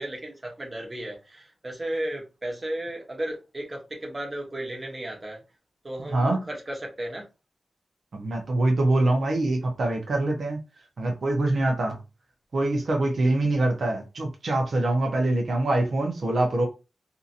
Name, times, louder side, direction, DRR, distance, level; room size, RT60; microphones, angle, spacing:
voice 1, 0.0-5.4 5.8-7.3, right 1 dB, 25° right, 0.9 m, -34 dB
voice 2, 8.1-10.6 11.0-12.0 12.5-16.7, right 2 dB, 70° right, 0.7 m, -24 dB
2.8 x 2.6 x 2.5 m
wide cardioid pair, 110°, 0 cm